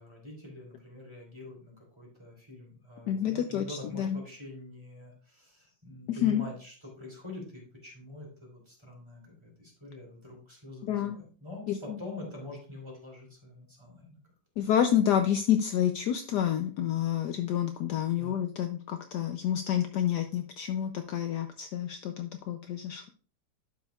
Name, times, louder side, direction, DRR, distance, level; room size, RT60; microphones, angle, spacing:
voice 1, 0.0-14.2 18.2-18.5, left 2 dB, 15° right, -1 dB, 3.1 m, -45 dB
voice 2, 3.1-4.2 6.1-6.4 10.9-11.2 14.6-23.1, left 10 dB, 70° left, 7 dB, 1.1 m, -28 dB
11.5 x 6.3 x 2.4 m, 0.40 s
omnidirectional pair, 2.1 m